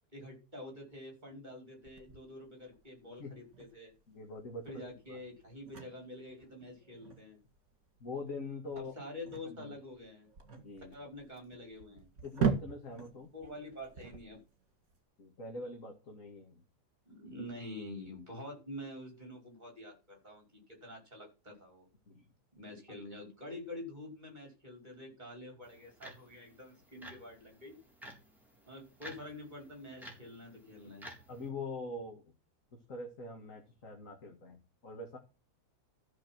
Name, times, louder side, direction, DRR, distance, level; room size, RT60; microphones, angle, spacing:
voice 1, 0.1-3.9 4.7-7.4 8.8-10.3 10.9-12.1 13.3-14.4 17.1-21.9 22.5-27.7 28.7-31.1, left 1 dB, 25° right, 1 dB, 5.6 m, -47 dB
sound 1, 1.8-15.0, right 6 dB, 60° right, 2.5 m, -41 dB
voice 2, 4.1-4.8 5.1-5.2 8.0-8.9 9.4-9.8 10.6-11.0 12.2-13.3 15.2-16.6 22.1-22.3 31.3-32.2 32.9-35.2, left 2 dB, 55° left, 2 dB, 2.4 m, -43 dB
sound 2, 25.6-31.5, equal, ahead, 4.0 m, -53 dB
13.5 x 6.5 x 6.1 m, 0.31 s
omnidirectional pair, 1.7 m